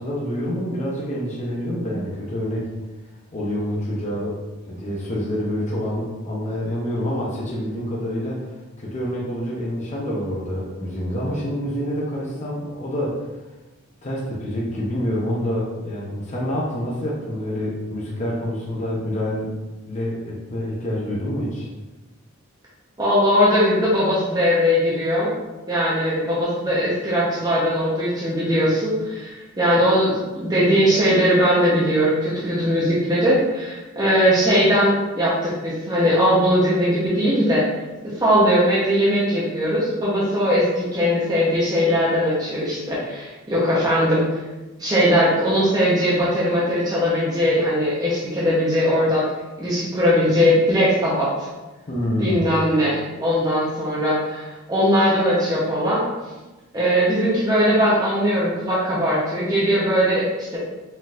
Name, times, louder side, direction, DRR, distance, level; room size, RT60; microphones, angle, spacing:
voice 1, 0.0-2.7 3.3-4.4 4.7-8.4 8.8-13.3 14.0-19.5 19.9-21.7 51.9-52.4, equal, 35° left, -5 dB, 0.7 m, -27 dB
voice 2, 23.0-25.3 25.7-37.6 38.2-44.2 44.8-49.2 49.6-51.5 52.2-56.0 56.7-60.6, equal, 20° right, -8 dB, 0.8 m, -20 dB
4.2 x 3.9 x 2.4 m, 1.1 s
head